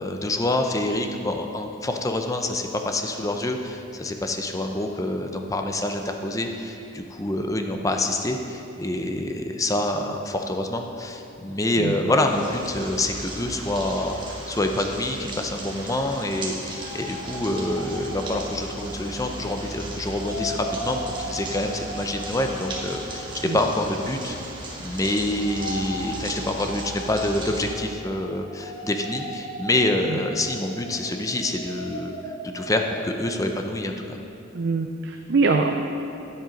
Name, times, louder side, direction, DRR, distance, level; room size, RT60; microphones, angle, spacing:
voice 1, 0.0-23.3 23.5-24.4 24.8-32.1 32.4-34.2, left 1 dB, 15° left, 4 dB, 0.6 m, -26 dB
sound 1, 12.3-27.7, right 1 dB, 25° right, 1.4 m, -36 dB
sound 2, 16.2-19.6 20.0-33.4, left 1 dB, 75° left, 1.5 m, -38 dB
voice 2, 34.5-35.7, right 4 dB, 55° right, 4 dB, 0.5 m, -23 dB
10.0 x 7.7 x 5.2 m, 2.8 s
head